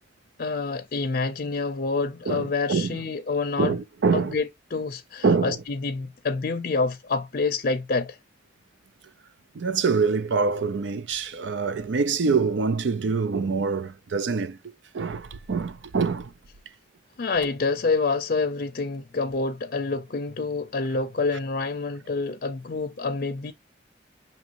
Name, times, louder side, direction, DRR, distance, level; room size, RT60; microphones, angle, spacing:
voice 1, 0.4-3.8 4.1-8.2 17.2-23.5, left 4 dB, 50° left, 0.5 m, -27 dB
voice 2, 2.3-3.0 3.6-4.4 5.2-5.6 9.5-14.6 14.9-16.3, right 4 dB, 80° right, 0.5 m, -25 dB
6.1 x 2.9 x 2.9 m
head